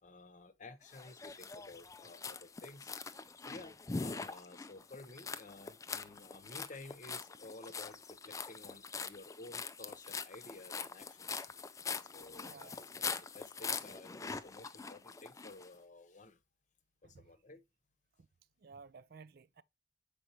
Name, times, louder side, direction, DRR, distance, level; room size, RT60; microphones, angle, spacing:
voice 1, 0.0-2.9 3.4-11.4 12.1-16.4 17.0-17.6, left 2 dB, 40° left, 0.9 m, -53 dB
sound 1, 0.9-15.7, left 5 dB, 20° left, 0.4 m, -43 dB
voice 2, 12.4-12.8 17.0-17.3 18.2-18.3 18.6-19.6, right 4 dB, 55° right, 0.5 m, -55 dB
6.7 x 4.9 x 2.9 m
head